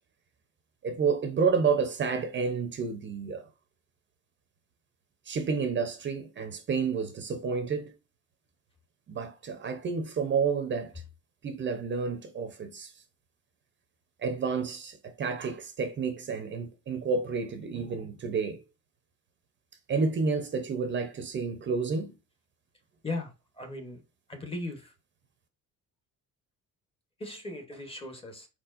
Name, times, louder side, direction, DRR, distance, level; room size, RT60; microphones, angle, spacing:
voice 1, 0.8-3.5 5.3-7.9 9.1-10.9 11.4-12.9 14.2-18.6 19.9-22.1, right 5 dB, 35° right, 0.7 m, -30 dB
voice 2, 23.6-24.0 24.3-24.9 27.2-28.5, left 2 dB, 15° left, 0.9 m, -37 dB
4.7 x 4.4 x 2.4 m
cardioid pair, 160°, 34 cm